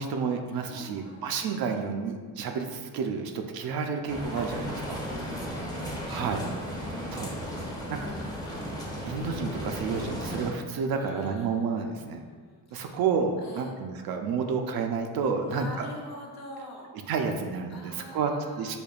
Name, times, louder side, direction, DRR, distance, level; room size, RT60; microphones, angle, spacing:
voice 1, 0.0-5.0 6.1-6.4 7.1-7.3 7.9-8.1 9.0-12.2 12.7-15.9 17.1-18.3 18.6-18.8, right 5 dB, 60° right, 4 dB, 0.5 m, -30 dB
voice 2, 0.5-1.5 4.4-9.0 10.9-13.0 13.4-13.7 15.4-17.1 17.7-18.8, left 1 dB, 40° left, -1 dB, 0.8 m, -47 dB
sound 1, 4.1-10.5, equal, 10° left, 0.6 m, -35 dB
5.1 x 2.2 x 2.3 m, 1.5 s
supercardioid pair, 75°, 42 cm